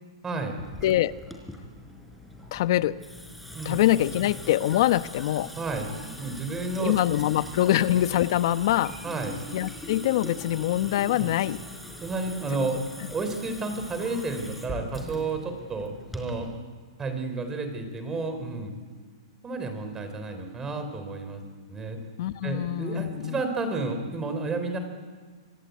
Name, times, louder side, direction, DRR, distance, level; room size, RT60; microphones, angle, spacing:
voice 1, 0.2-0.5 3.5-3.8 5.6-5.9 6.2-6.9 7.3-7.4 9.0-9.3 11.1-11.4 12.0-12.8 13.1-16.5 17.0-18.7 19.4-21.4 21.7-22.0 22.4-24.8, right 3 dB, 15° right, 7 dB, 4.1 m, -31 dB
Water tap faucet / Sink (filling or washing) / Drip, 0.6-16.6, left 1 dB, ahead, 4.4 m, -41 dB
voice 2, 0.8-1.1 2.5-3.0 3.6-5.5 6.8-8.9 9.5-11.6 22.2-23.4, left 13 dB, 55° left, 13 dB, 1.0 m, -24 dB
26.0 x 22.0 x 9.6 m, 1.5 s
hypercardioid pair, 145°, 3 cm